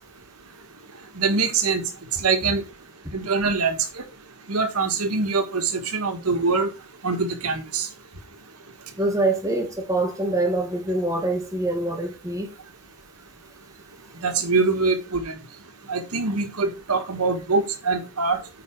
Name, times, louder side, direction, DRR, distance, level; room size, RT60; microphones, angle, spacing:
voice 1, 1.1-1.8 2.2-2.6 3.1-4.0 4.5-6.7 7.0-7.9 14.2-15.4 15.9-18.4, right 4 dB, 90° right, 1.6 m, -23 dB
voice 2, 9.0-12.5, right 2 dB, 15° right, 2.0 m, -24 dB
9.6 x 4.9 x 4.7 m
head